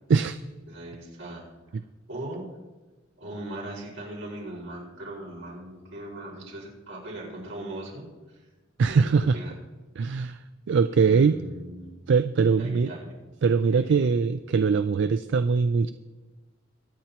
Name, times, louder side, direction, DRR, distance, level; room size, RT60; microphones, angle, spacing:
voice 1, 0.7-1.5 2.1-2.5 3.2-8.5 8.9-9.5 11.0-11.9 12.6-13.1 13.7-14.2, right 1 dB, 85° right, -4 dB, 4.9 m, -39 dB
voice 2, 8.8-9.4 10.0-10.4 10.7-11.4 12.1-12.9 13.4-15.9, right 5 dB, 60° right, 11 dB, 0.4 m, -22 dB
24.5 x 9.0 x 2.9 m, 1.2 s
head